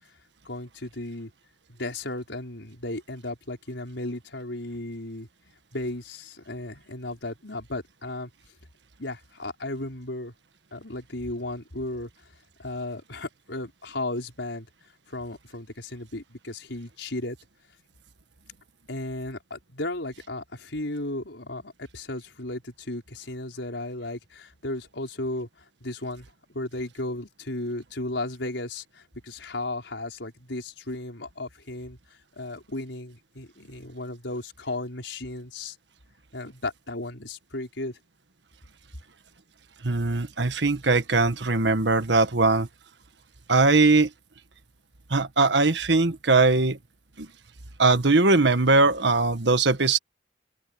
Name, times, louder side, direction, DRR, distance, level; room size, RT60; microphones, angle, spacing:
voice 1, 0.5-1.3 1.7-5.3 5.7-8.3 9.0-10.3 10.7-12.1 12.6-14.7 15.1-17.4 18.9-25.5 25.8-32.0 32.3-35.8 36.3-38.0, left 2 dB, 90° left, 5.1 m, -35 dB
voice 2, 39.8-42.7 43.5-44.1 45.1-46.8 47.2-47.3 47.8-50.0, right 3 dB, 75° right, 1.5 m, -20 dB
open air
head